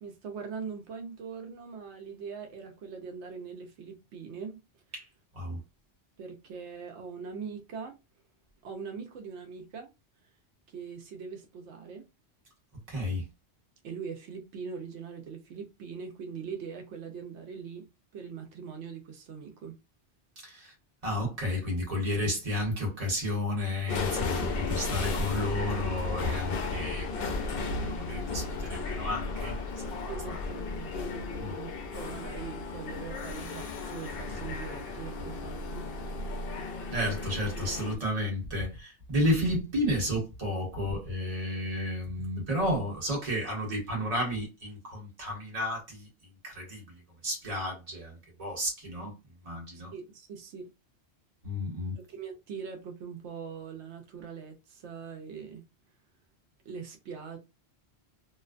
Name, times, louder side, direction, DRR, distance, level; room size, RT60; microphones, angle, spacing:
voice 1, 0.0-4.8 6.2-8.0 8.6-9.9 10.7-12.1 13.8-17.9 18.1-19.8 30.1-35.8 49.9-50.7 52.1-55.6 56.6-57.4, right 6 dB, 85° right, 0.9 m, -42 dB
voice 2, 12.7-13.3 20.4-20.7 21.0-27.3 27.5-30.4 31.4-31.5 36.9-46.1 46.4-49.1 49.4-49.9 51.4-51.9, left 1 dB, 35° right, 1.1 m, -32 dB
sound 1, 23.9-38.0, left 3 dB, 65° left, 0.7 m, -34 dB
2.5 x 2.2 x 2.4 m
omnidirectional pair, 1.1 m